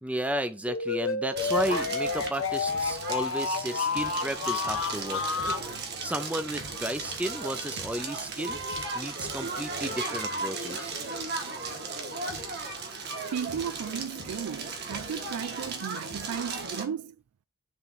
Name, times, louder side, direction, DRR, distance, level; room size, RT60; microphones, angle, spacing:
voice 1, 0.0-5.2 6.0-8.6 8.9-11.1, right 1 dB, 5° right, 0.5 m, -33 dB
sound 1, 0.7-5.7, left 5 dB, 60° left, 0.8 m, -30 dB
Crackle, 1.4-16.8, right 3 dB, 50° right, 1.5 m, -36 dB
voice 2, 13.3-17.2, right 7 dB, 90° right, 0.3 m, -35 dB
7.0 x 3.3 x 5.7 m
head